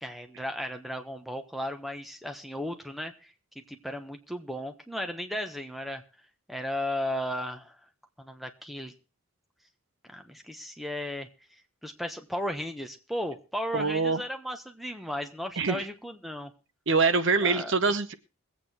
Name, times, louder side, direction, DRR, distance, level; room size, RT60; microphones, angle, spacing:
voice 1, 0.0-3.1 3.5-6.0 6.5-7.7 8.2-8.9 10.1-11.3 11.8-16.5 17.4-17.7, left 1 dB, ahead, 5 dB, 1.2 m, -35 dB
voice 2, 13.7-14.2 15.6-15.8 16.9-18.1, right 4 dB, 55° right, 13 dB, 0.9 m, -24 dB
22.0 x 8.4 x 4.4 m, 0.33 s
head